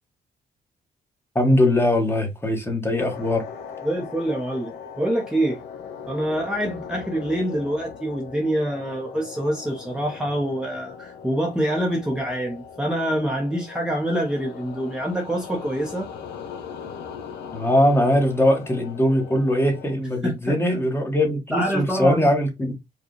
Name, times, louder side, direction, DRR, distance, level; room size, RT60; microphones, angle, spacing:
voice 1, 1.3-3.4 17.5-22.7, left 1 dB, 15° left, 1.2 m, -21 dB
sound 1, 3.0-20.0, left 7 dB, 85° left, 0.8 m, -39 dB
voice 2, 3.8-5.6 6.1-16.1 20.2-20.6 21.5-22.3, right 1 dB, 5° right, 0.8 m, -26 dB
4.7 x 2.3 x 3.1 m
cardioid pair, 110°, 17 cm